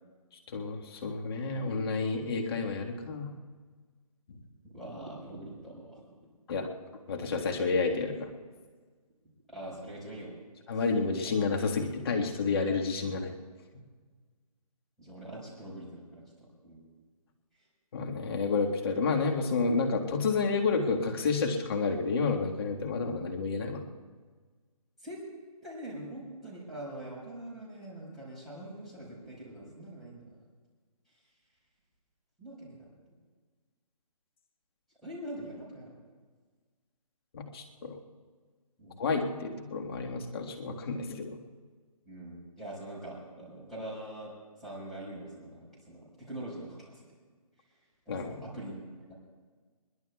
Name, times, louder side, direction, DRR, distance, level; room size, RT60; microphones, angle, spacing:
voice 1, 0.5-3.3 6.5-6.7 7.1-8.3 10.7-13.3 17.9-23.8 37.3-38.0 39.0-41.4 48.1-48.5, left 4 dB, 40° left, 1 dB, 1.7 m, -30 dB
voice 2, 4.7-6.0 9.5-10.4 15.0-16.9 25.0-25.2 25.6-30.4 32.4-32.9 35.0-35.9 38.8-39.0 42.0-44.3 44.6-47.1 48.0-48.7 49.1-49.2, right 1 dB, ahead, -9 dB, 5.0 m, -43 dB
21.5 x 21.5 x 2.4 m, 1.5 s
figure-of-eight pair, 155°, 20 cm